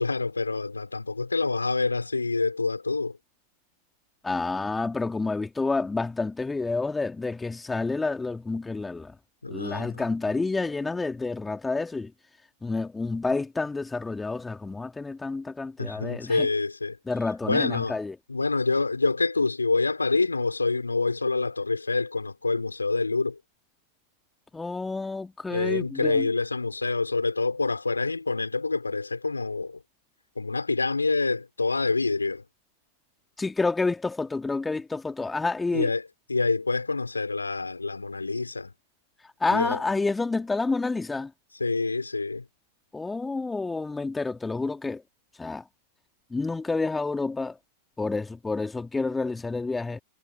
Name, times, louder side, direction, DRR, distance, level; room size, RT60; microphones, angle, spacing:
voice 1, 0.0-3.2 9.4-10.0 15.8-17.0 17.4-18.0 18.3-23.4 25.5-29.8 30.4-32.4 35.7-38.7 39.5-39.8 41.5-42.5, left 3 dB, 80° left, 4.6 m, -27 dB
voice 2, 4.2-9.1 9.5-12.1 12.6-16.5 17.1-18.2 24.5-26.3 33.4-35.9 39.4-41.3 42.9-45.0 45.4-45.6 46.3-47.6 48.0-50.0, left 3 dB, 10° left, 2.9 m, -29 dB
figure-of-eight pair, 90°, 0 cm